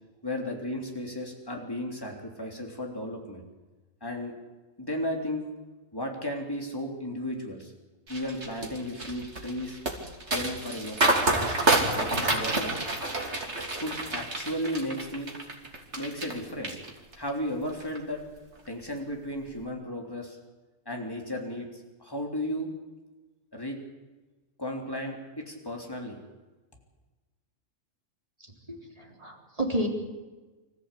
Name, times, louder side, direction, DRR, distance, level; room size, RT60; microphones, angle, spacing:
voice 1, 0.2-3.4 4.0-4.4 4.8-5.5 5.9-7.7 8.1-9.8 10.3-12.8 13.8-15.3 16.0-16.8 17.2-18.2 18.7-20.4 20.9-22.7 23.5-23.8 24.6-26.2, left 1 dB, 15° left, 1 dB, 3.4 m, -34 dB
sound 1, 8.1-16.3 16.6-17.3 17.7-18.0, right 2 dB, 55° right, 3.3 m, -28 dB
voice 2, 28.4-29.9, right 1 dB, 25° right, 0 dB, 3.8 m, -32 dB
25.5 x 14.5 x 8.4 m, 1.2 s
omnidirectional pair, 1.4 m